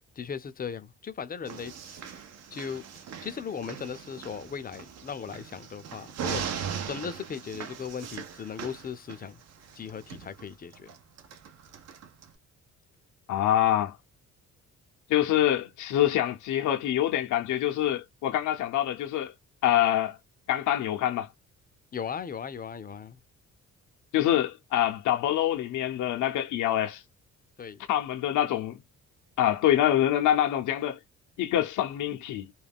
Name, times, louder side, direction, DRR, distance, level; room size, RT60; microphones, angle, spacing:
voice 1, 0.2-2.2 2.5-2.8 3.2-6.4 6.8-9.4 9.7-10.9 21.9-23.2 27.6-27.8, left 7 dB, 30° left, 0.5 m, -37 dB
sound 1, 1.4-12.3, right 7 dB, 55° right, 0.6 m, -40 dB
voice 2, 13.3-14.0 15.1-19.3 19.6-20.2 20.5-21.3 24.1-27.0 27.9-28.8 29.4-31.0 31.4-32.5, left 12 dB, 75° left, 0.6 m, -25 dB
2.4 x 2.2 x 3.4 m
cardioid pair, 90°, 30 cm